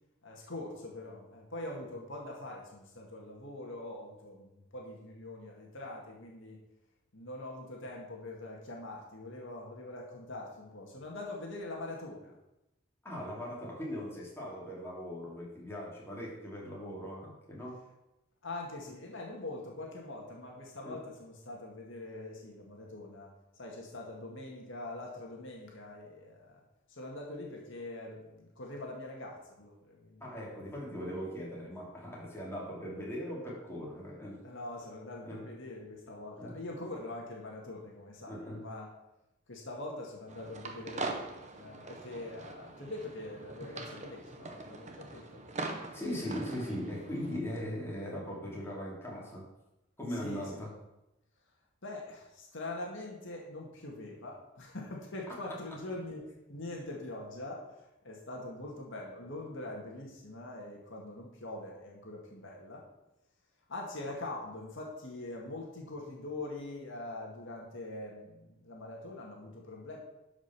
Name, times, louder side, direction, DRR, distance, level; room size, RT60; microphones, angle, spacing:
voice 1, 0.2-6.6 7.1-12.4 18.4-26.6 26.9-30.3 34.4-38.9 39.5-41.3 41.5-45.4 50.2-50.6 51.8-62.9 63.7-70.0, left 2 dB, 65° left, -1 dB, 2.1 m, -43 dB
voice 2, 13.0-17.8 20.8-21.0 30.2-34.4 35.3-35.5 36.4-36.5 38.3-38.7 45.9-49.5 50.0-50.7, equal, 10° left, -5 dB, 3.2 m, -39 dB
sound 1, 40.3-47.4, right 3 dB, 35° right, 1.1 m, -42 dB
12.0 x 5.3 x 6.0 m, 0.93 s
head